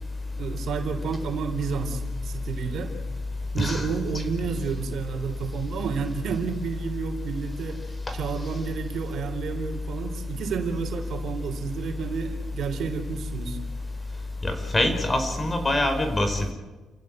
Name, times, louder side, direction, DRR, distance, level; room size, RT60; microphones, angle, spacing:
voice 1, 0.4-2.9 3.5-7.8 8.1-13.6, right 6 dB, 70° right, 6 dB, 3.6 m, -31 dB
voice 2, 3.6-3.9 14.4-16.5, left 1 dB, 25° left, 7 dB, 5.0 m, -24 dB
30.0 x 15.5 x 9.0 m, 1.3 s
cardioid pair, 90°, 0 cm